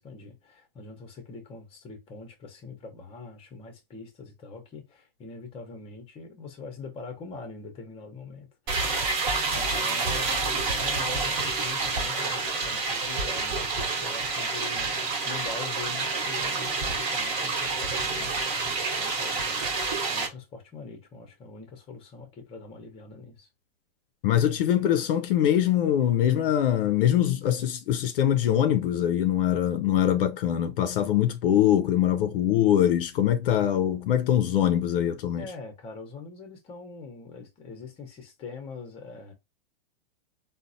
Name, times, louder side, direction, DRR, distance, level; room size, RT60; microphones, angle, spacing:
voice 1, 0.0-9.0 9.5-23.5 35.4-39.3, left 4 dB, 20° left, 0.7 m, -43 dB
sound 1, 8.7-20.3, right 3 dB, 40° right, 1.1 m, -28 dB
voice 2, 24.2-35.5, left 11 dB, 65° left, 0.5 m, -23 dB
3.9 x 2.1 x 2.6 m
hypercardioid pair, 135°, 31 cm